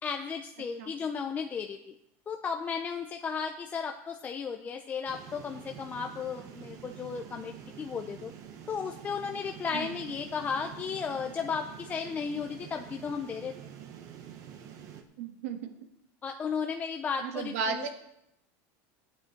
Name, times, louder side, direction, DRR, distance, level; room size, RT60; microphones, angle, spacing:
voice 1, 0.0-1.9 2.3-8.3 8.7-13.5 16.2-17.9, left 6 dB, 20° left, 5 dB, 0.6 m, -34 dB
sound 1, 5.1-15.0, right 9 dB, 45° right, 1.2 m, -47 dB
voice 2, 15.2-15.6 17.2-17.9, right 5 dB, 75° right, 5 dB, 1.7 m, -34 dB
13.5 x 8.7 x 4.5 m, 0.80 s
supercardioid pair, 150°, 8 cm